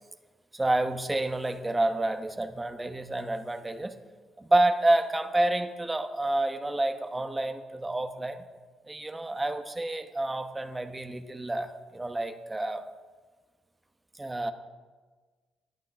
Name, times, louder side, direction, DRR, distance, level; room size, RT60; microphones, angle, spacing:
voice 1, 0.5-3.9 4.4-8.4 8.9-12.8 14.2-14.5, right 2 dB, 15° right, 8 dB, 1.1 m, -29 dB
16.0 x 11.0 x 4.3 m, 1.4 s
cardioid pair, 90°, 0 cm